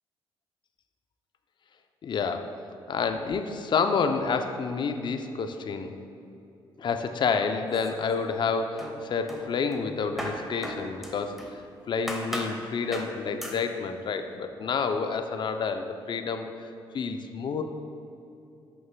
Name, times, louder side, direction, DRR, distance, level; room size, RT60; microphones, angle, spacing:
voice 1, 2.0-2.5 2.9-5.9 6.8-11.6 11.9-16.5 16.9-17.6, left 5 dB, 50° left, 7 dB, 0.6 m, -29 dB
sound 1, 7.7-8.5 8.8-11.6 12.1-12.6 12.9-13.1 13.4-13.6, equal, ahead, 1.3 m, -37 dB
11.0 x 6.3 x 2.3 m, 3.0 s
supercardioid pair, 65°, 10 cm